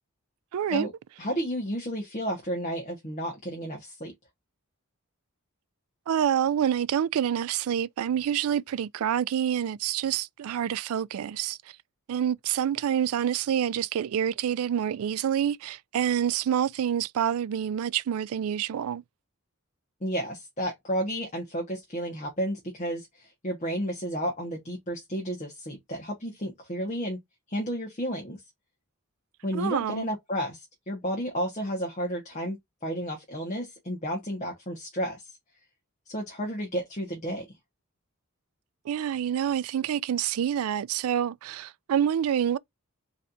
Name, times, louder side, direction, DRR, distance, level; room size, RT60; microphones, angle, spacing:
voice 1, 0.5-0.9 6.1-11.6 12.1-19.0 29.5-30.1 38.9-42.6, right 9 dB, 75° right, 0.3 m, -27 dB
voice 2, 1.2-4.1 20.0-27.2 27.5-28.4 29.4-32.6 32.8-35.3 36.1-37.4, equal, 30° left, 1.2 m, -32 dB
4.1 x 3.2 x 2.5 m
head